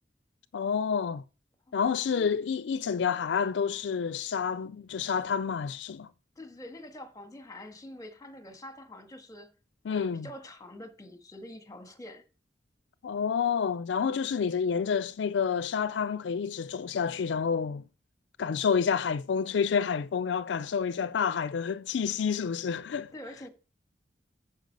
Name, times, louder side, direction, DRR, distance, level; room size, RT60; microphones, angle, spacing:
voice 1, 0.5-1.2 1.7-6.1 9.9-10.3 13.0-17.8 18.4-23.1, left 6 dB, 70° left, 0.4 m, -29 dB
voice 2, 2.1-2.4 6.4-9.5 9.9-12.2 23.1-23.5, left 1 dB, 20° left, 1.5 m, -45 dB
9.2 x 5.5 x 6.6 m
head